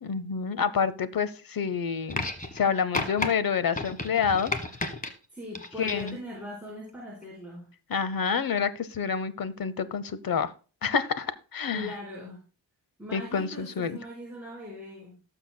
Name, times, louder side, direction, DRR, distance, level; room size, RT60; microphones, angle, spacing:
voice 1, 0.0-2.2 2.5-4.5 5.8-6.2 7.9-10.5 10.8-11.9 13.1-14.0, left 6 dB, 55° left, 13 dB, 0.8 m, -28 dB
sound 1, 2.1-2.6 2.9-3.3 3.7-5.1 5.6-6.2 7.2-7.3, left 2 dB, 20° left, 1.2 m, -32 dB
voice 2, 5.3-7.7 11.7-12.4 13.0-15.1, left 1 dB, 5° right, -6 dB, 4.4 m, -40 dB
18.5 x 6.9 x 2.2 m, 0.35 s
wide cardioid pair, 125°, 41 cm